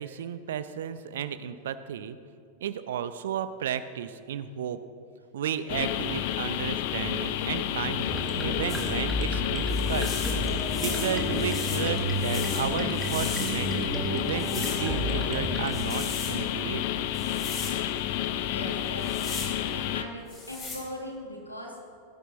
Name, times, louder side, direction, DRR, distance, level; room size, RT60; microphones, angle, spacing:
voice 1, 0.0-2.2 2.6-4.8 5.3-10.1 10.7-16.8, right 9 dB, 60° right, 12 dB, 0.6 m, -33 dB
sound 1, 5.7-20.0, left 11 dB, 50° left, 0.6 m, -30 dB
sound 2, 8.1-15.7, right 1 dB, 10° right, 2.0 m, -32 dB
sound 3, 8.7-8.9 9.7-13.8 14.3-14.9 15.6-16.4 17.1-17.8 18.9-19.5 20.3-20.8, left 3 dB, 25° left, 3.4 m, -38 dB
voice 2, 18.2-21.8, left 1 dB, 85° left, 0 dB, 2.1 m, -40 dB
17.0 x 10.0 x 4.0 m, 2.3 s
figure-of-eight pair, 90°, 0 cm